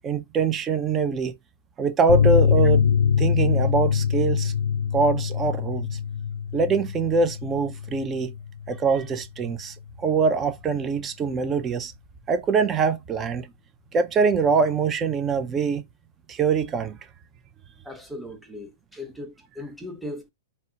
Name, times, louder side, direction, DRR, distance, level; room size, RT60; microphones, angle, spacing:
voice 1, 0.0-1.3 1.8-2.8 3.2-4.5 4.9-5.9 6.5-8.3 8.7-11.9 12.3-13.5 13.9-15.8 16.3-17.0, right 5 dB, 25° right, 0.5 m, -23 dB
sound 1, 2.1-9.2 9.4-9.6 9.9-10.0, left 7 dB, 70° left, 0.4 m, -23 dB
voice 2, 17.8-20.3, left 1 dB, ahead, 0.9 m, -38 dB
4.1 x 2.2 x 2.8 m
hypercardioid pair, 110°, 0 cm